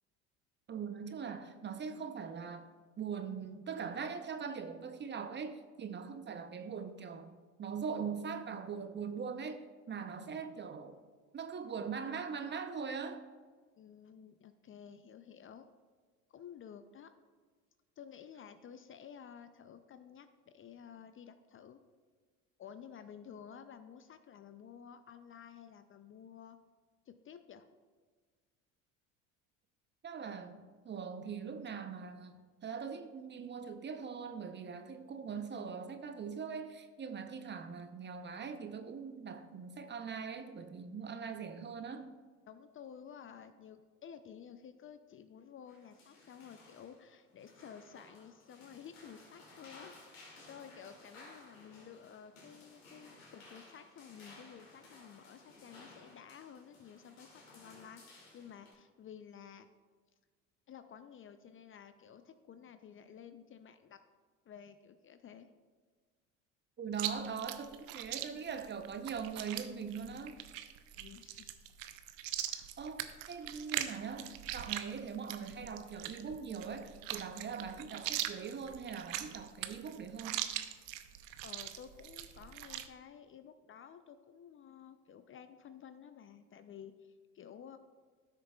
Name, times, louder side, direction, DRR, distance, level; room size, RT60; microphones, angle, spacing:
voice 1, 0.7-2.7 3.0-7.3 7.6-9.6 9.9-10.9 11.3-13.3 30.0-32.3 32.6-42.2 66.8-70.3 72.5-80.4, right 6 dB, 30° right, 9 dB, 0.7 m, -41 dB
voice 2, 13.8-15.7 16.3-17.1 18.0-21.8 22.6-26.6 27.1-27.7 42.5-59.7 60.7-64.0 64.5-65.5 71.0-71.6 81.4-87.8, left 8 dB, 35° left, 10 dB, 0.5 m, -53 dB
sound 1, 45.7-58.7, left 2 dB, 90° left, 2.3 m, -57 dB
Chewing mastication, 66.9-82.9, right 13 dB, 75° right, 0.7 m, -41 dB
13.0 x 6.6 x 2.3 m, 1.5 s
hypercardioid pair, 75°, 39 cm